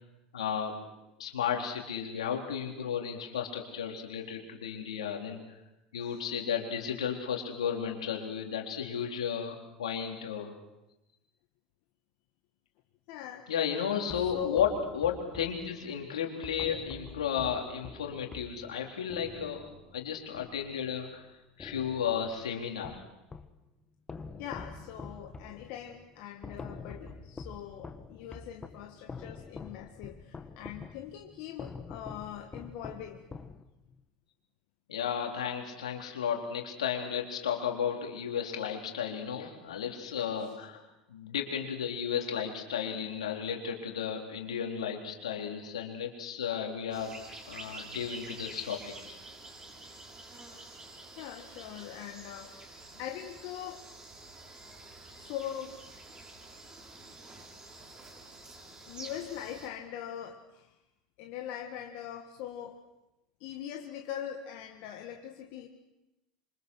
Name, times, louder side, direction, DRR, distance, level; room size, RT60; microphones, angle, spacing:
voice 1, 0.3-0.8 1.2-5.4 5.9-10.5 13.5-19.7 19.9-21.3 21.6-23.0 34.9-40.8 41.1-47.1 47.5-49.2, left 8 dB, 85° left, 1 dB, 3.9 m, -33 dB
voice 2, 13.1-13.5 14.1-14.7 24.4-33.2 40.4-40.5 48.5-48.7 51.2-53.9 55.2-55.8 58.9-60.8 61.2-62.8 63.4-65.7, left 10 dB, 60° left, 3 dB, 1.8 m, -42 dB
sound 1, 14.1-21.2 21.6-23.6 24.1-34.0, left 4 dB, 20° left, 1.8 m, -47 dB
sound 2, 46.9-59.7, right 2 dB, 25° right, 7.1 m, -48 dB
27.0 x 25.0 x 6.4 m, 0.97 s
hypercardioid pair, 85°, 3 cm